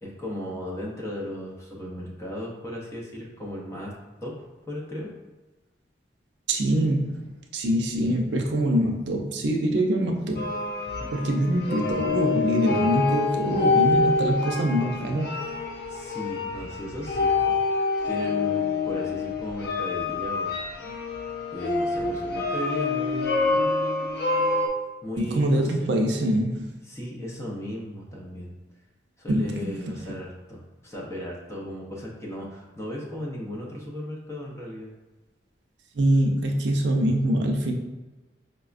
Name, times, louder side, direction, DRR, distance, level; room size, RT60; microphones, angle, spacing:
voice 1, 0.0-3.9 4.2-4.3 4.7-5.1 11.0-11.1 15.9-17.6 18.0-20.6 21.5-23.6 25.0-25.6 26.8-28.5 29.2-34.9, left 1 dB, 15° left, -3 dB, 0.6 m, -36 dB
voice 2, 6.5-10.5 11.1-15.3 25.2-26.7 29.3-30.0 35.9-37.7, right 1 dB, 75° right, 2 dB, 0.5 m, -24 dB
sound 1, 10.4-24.7, left 3 dB, 55° left, 0.5 m, -26 dB
4.8 x 2.2 x 2.4 m, 1.2 s
head